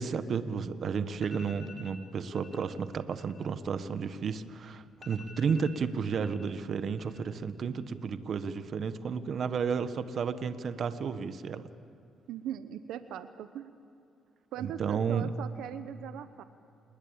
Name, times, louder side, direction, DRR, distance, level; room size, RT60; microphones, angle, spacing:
voice 1, 0.0-11.7 14.6-15.3, right 6 dB, 55° right, 12 dB, 1.2 m, -32 dB
sound 1, 1.2-2.0 2.3-2.7 3.0-4.4 4.7-4.8 5.0-6.5 6.8-7.4 7.6-8.2, left 4 dB, 50° left, 5.4 m, -52 dB
voice 2, 12.3-13.7 14.5-16.4, right 10 dB, 85° right, 11 dB, 1.0 m, -40 dB
28.5 x 20.0 x 8.8 m, 2.6 s
cardioid pair, 90°, 0 cm